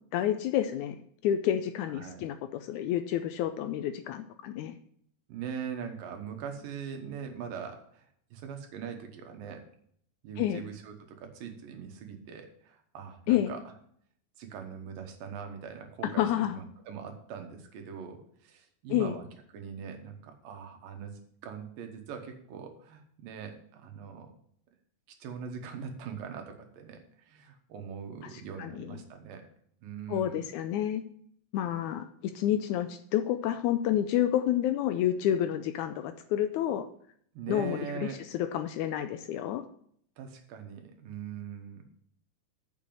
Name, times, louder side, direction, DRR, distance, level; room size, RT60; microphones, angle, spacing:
voice 1, 0.1-1.0 1.2-4.8 10.4-10.6 13.3-13.5 16.0-16.6 18.9-19.2 28.6-29.0 30.1-31.0 31.5-32.1 32.3-36.9 37.5-39.6, left 11 dB, 85° left, 9 dB, 1.7 m, -29 dB
voice 2, 5.3-9.6 10.2-13.7 14.4-19.3 19.5-24.3 25.2-29.4 29.8-30.5 37.3-38.2 40.2-41.8, right 7 dB, 80° right, 4 dB, 3.0 m, -42 dB
7.0 x 6.5 x 7.6 m, 0.64 s
omnidirectional pair, 4.0 m